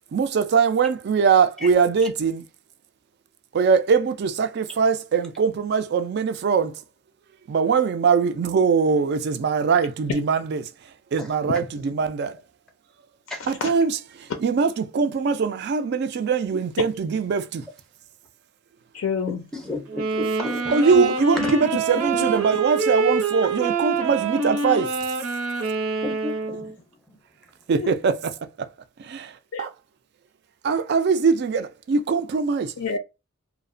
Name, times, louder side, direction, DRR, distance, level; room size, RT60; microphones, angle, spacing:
voice 1, 0.1-2.4 3.5-6.7 7.5-10.6 11.1-12.4 13.5-14.0 14.4-17.6 20.7-24.9 27.7-28.3 29.6-29.7 30.6-32.7, right 5 dB, 50° right, 0.3 m, -22 dB
voice 2, 18.9-19.4 20.9-21.1 22.1-22.3 23.6-23.7 27.7-27.9 29.5-29.7 32.8-33.0, left 5 dB, 65° left, 0.4 m, -28 dB
voice 3, 19.5-20.9 21.4-21.5 26.0-26.7 27.1-27.2, left 2 dB, 5° left, 0.5 m, -34 dB
sound 1, 19.9-26.7, right 4 dB, 80° right, 0.7 m, -26 dB
2.8 x 2.0 x 2.5 m
head